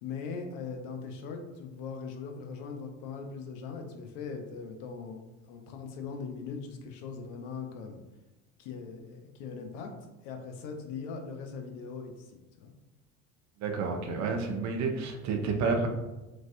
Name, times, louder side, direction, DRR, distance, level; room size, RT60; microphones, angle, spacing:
voice 1, 0.0-5.2 5.5-8.0 8.6-9.9 10.2-12.1 12.6-12.7, left 5 dB, 65° left, 4 dB, 0.7 m, -40 dB
voice 2, 13.6-15.9, right 4 dB, 40° right, 4 dB, 0.6 m, -30 dB
3.1 x 2.5 x 2.6 m, 1.0 s
hypercardioid pair, 70°, 43 cm